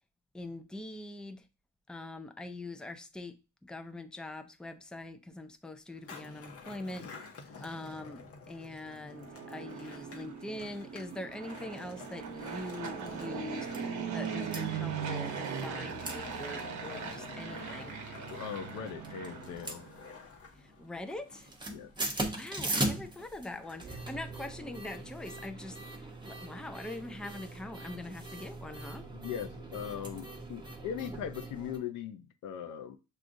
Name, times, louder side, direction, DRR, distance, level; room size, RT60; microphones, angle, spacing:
voice 1, 0.3-1.5 1.9-13.7 14.1-18.0 20.6-21.5 22.3-29.1, left 2 dB, 5° left, 0.4 m, -43 dB
Skateboard, 5.9-24.6, left 5 dB, 50° left, 0.9 m, -51 dB
Fixed-wing aircraft airplane, 8.9-20.0, right 7 dB, 70° right, 0.8 m, -39 dB
sound 1, 12.5-12.6 13.1-13.2 13.4-13.8 14.3-14.6 15.4-15.7 16.0-16.2 16.5-16.6 17.1-17.5 18.2-18.7 19.0-20.4 20.7-21.0 21.3-31.8, right 2 dB, 15° right, 0.9 m, -39 dB
voice 2, 18.3-19.9 21.7-21.9 22.7-22.8 29.1-33.0, left 9 dB, 90° left, 0.6 m, -40 dB
6.3 x 2.4 x 2.6 m
cardioid pair, 90°, 30 cm